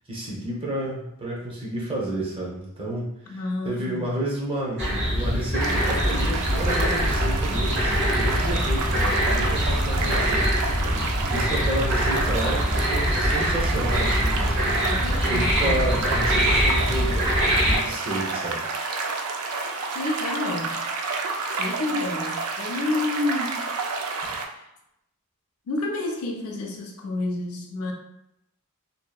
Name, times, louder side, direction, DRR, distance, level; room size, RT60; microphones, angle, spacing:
voice 1, 0.1-10.5 11.3-18.7 24.2-24.3, right 1 dB, 25° right, -4 dB, 0.7 m, -31 dB
voice 2, 3.3-4.1 14.8-16.0 19.9-20.8 21.6-23.7 24.2-24.6 25.7-27.9, left 2 dB, 75° left, 0 dB, 0.4 m, -30 dB
sound 1, 4.8-17.8, equal, 55° right, 1.0 m, -23 dB
sound 2, 5.6-24.5, right 4 dB, 80° right, 0.4 m, -30 dB
2.7 x 2.4 x 2.2 m, 0.82 s
head